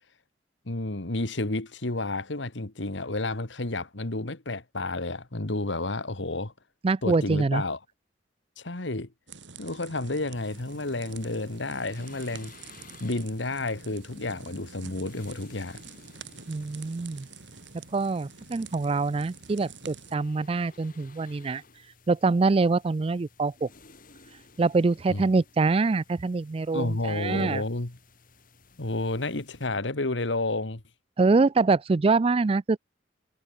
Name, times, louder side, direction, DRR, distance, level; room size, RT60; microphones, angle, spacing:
voice 1, 0.7-6.5 7.0-7.8 8.6-9.1 9.6-12.5 13.0-15.8 25.1-25.2 26.7-28.0 28.8-30.8, left 2 dB, 85° left, 2.0 m, -31 dB
voice 2, 6.8-7.6 16.5-17.3 17.9-21.6 22.1-23.7 24.6-27.6 31.2-32.8, right 3 dB, 30° right, 0.4 m, -24 dB
sound 1, 9.3-20.1, right 5 dB, 80° right, 5.1 m, -47 dB
sound 2, 10.3-29.7, left 4 dB, 50° left, 5.8 m, -56 dB
head